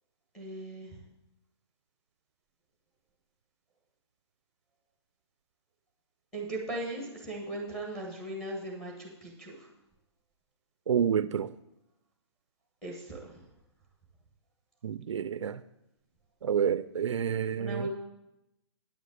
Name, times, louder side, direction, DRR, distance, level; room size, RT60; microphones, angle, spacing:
voice 1, 0.3-0.9 6.3-9.7 12.8-13.3 17.6-17.9, right 1 dB, 5° left, 1.2 m, -38 dB
voice 2, 10.9-11.5 14.8-15.6 16.4-17.9, right 8 dB, 85° right, 0.5 m, -29 dB
9.2 x 5.1 x 7.9 m
hypercardioid pair, 180°, 15 cm